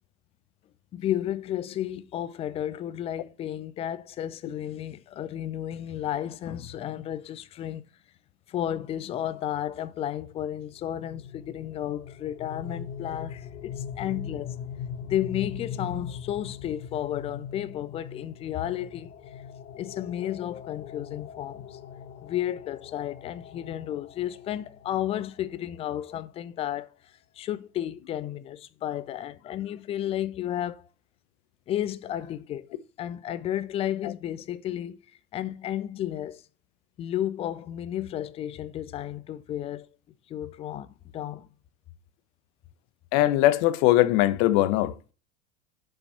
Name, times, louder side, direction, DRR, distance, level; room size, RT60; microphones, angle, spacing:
voice 1, 0.9-7.8 8.5-14.6 15.1-19.1 19.8-21.8 22.2-26.9 27.4-30.9 31.7-32.7 33.0-35.0 35.3-36.4 37.0-39.9 40.3-41.5, left 11 dB, 15° left, 0.3 m, -32 dB
sound 1, 10.8-25.6, left 7 dB, 70° left, 1.4 m, -41 dB
voice 2, 43.1-45.1, left 15 dB, 45° left, 0.9 m, -21 dB
6.9 x 5.3 x 5.5 m
figure-of-eight pair, 85°, 43 cm